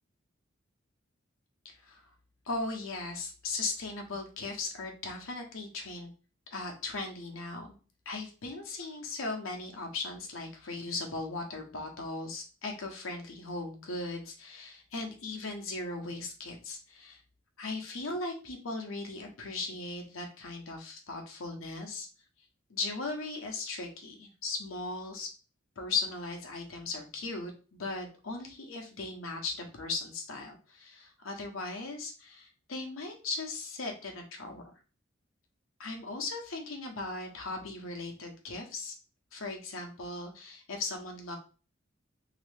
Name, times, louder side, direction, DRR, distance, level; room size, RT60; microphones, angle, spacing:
voice 1, 1.6-2.1 2.5-6.1 6.5-7.7 8.1-17.2 17.6-22.1 22.7-25.3 25.8-34.6 35.8-38.9 39.3-41.4, left 3 dB, 85° left, 3 dB, 0.9 m, -38 dB
3.1 x 2.8 x 3.3 m, 0.36 s
head